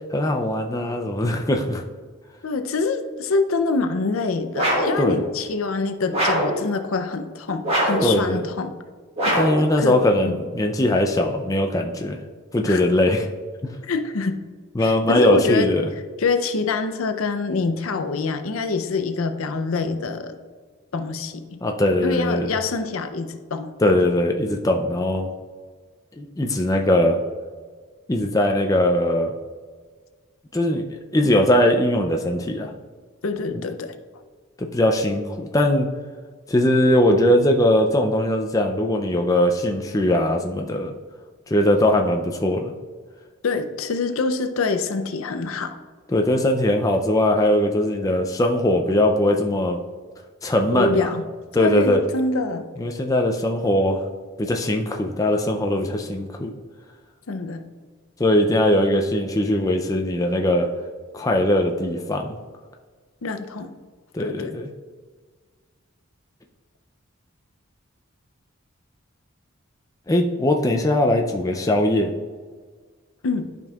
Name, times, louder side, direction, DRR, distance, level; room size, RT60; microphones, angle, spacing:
voice 1, 0.1-1.8 5.0-5.2 8.0-8.5 9.3-12.2 12.5-13.3 13.6-13.8 14.8-15.9 21.6-22.5 23.8-25.3 26.2-27.2 28.1-29.3 30.5-32.7 34.6-35.9 36.5-40.9 41.5-42.7 46.1-49.8 50.4-51.1 51.5-52.0 52.8-54.0 54.4-56.5 58.2-60.7 61.1-62.3 64.1-64.7 70.1-72.1, left 1 dB, 15° left, 3 dB, 0.4 m, -20 dB
voice 2, 2.4-8.7 9.2-10.0 10.2-10.4 12.6-12.8 13.8-14.4 14.8-15.7 16.2-20.4 20.9-21.6 22.0-23.7 33.2-33.9 43.4-45.8 50.7-51.3 51.6-52.7 57.3-57.7 63.2-63.7 64.2-64.5 73.2-73.5, left 4 dB, 75° left, 8 dB, 0.6 m, -25 dB
sound 1, 4.5-5.0 6.1-6.6 7.6-8.1 9.2-9.6, right 1 dB, 30° right, 1.7 m, -22 dB
11.5 x 5.3 x 2.4 m, 1.5 s
head